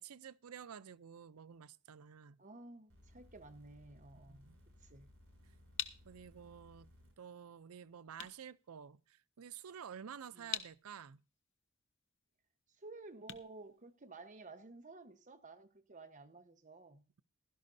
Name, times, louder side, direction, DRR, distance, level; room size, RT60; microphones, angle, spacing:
voice 1, 0.0-2.4 4.1-4.5 6.0-6.9 7.2-11.2, right 7 dB, 90° right, 0.5 m, -51 dB
voice 2, 2.4-4.5 4.8-5.1 10.3-10.5 12.8-17.1, right 3 dB, 35° right, 1.1 m, -54 dB
sound 1, 2.9-7.1 8.1-8.2, left 1 dB, 65° right, 6.8 m, -62 dB
sound 2, 5.1-14.5, left 10 dB, 60° left, 0.9 m, -49 dB
16.0 x 12.5 x 2.6 m
head